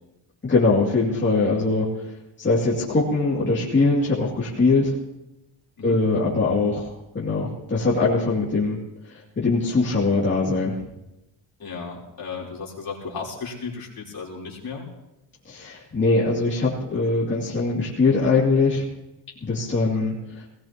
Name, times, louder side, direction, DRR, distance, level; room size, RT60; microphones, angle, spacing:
voice 1, 0.4-1.9 2.4-4.9 5.8-8.8 9.4-10.8 15.5-18.8 19.4-20.1, left 3 dB, 25° left, -7 dB, 2.6 m, -21 dB
voice 2, 11.6-14.8 19.9-20.1, left 5 dB, 45° left, -3 dB, 3.7 m, -35 dB
20.5 x 17.5 x 3.0 m, 0.93 s
wide cardioid pair, 170°, 48 cm